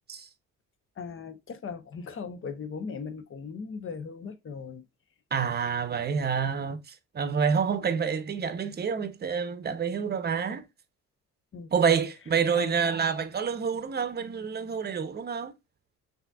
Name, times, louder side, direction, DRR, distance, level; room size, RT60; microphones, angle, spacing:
voice 1, 1.0-4.8 7.7-8.1 11.5-12.0 12.5-12.9, left 5 dB, 45° left, 0.8 m, -39 dB
voice 2, 5.3-10.6 11.7-15.5, right 6 dB, 35° right, 0.8 m, -28 dB
5.8 x 2.8 x 2.3 m
cardioid pair, 90°, 30 cm